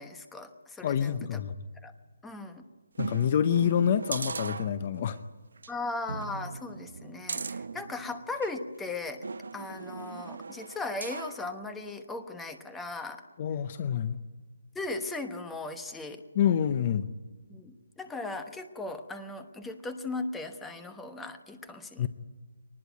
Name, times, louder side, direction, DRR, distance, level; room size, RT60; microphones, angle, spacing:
voice 1, 0.0-1.4 1.8-1.9 2.2-2.6 5.7-9.2 9.5-13.2 14.7-16.2 17.5-22.1, left 3 dB, 5° left, 7 dB, 1.1 m, -37 dB
voice 2, 0.8-1.5 3.0-5.2 13.4-14.2 16.3-17.1 22.0-22.1, left 9 dB, 30° left, 13 dB, 0.7 m, -27 dB
sound 1, 2.9-5.2 5.6-5.7 6.1-8.6 9.2-11.4 11.9-12.0, right 4 dB, 75° right, 1.0 m, -38 dB
23.0 x 19.5 x 9.4 m, 1.4 s
hypercardioid pair, 170°, 0 cm